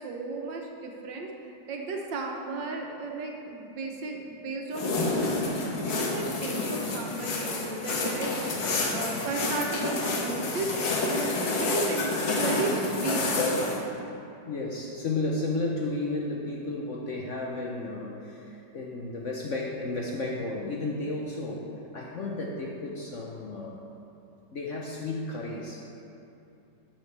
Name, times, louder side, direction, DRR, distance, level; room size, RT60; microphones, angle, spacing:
voice 1, 0.0-8.3 8.9-13.7, right 3 dB, 75° right, 1 dB, 1.6 m, -35 dB
sound 1, 4.7-13.8, left 2 dB, 75° left, 1.8 m, -29 dB
voice 2, 14.5-23.8 24.5-25.9, left 2 dB, 55° left, -1 dB, 0.9 m, -33 dB
12.0 x 7.3 x 3.3 m, 2.8 s
omnidirectional pair, 2.0 m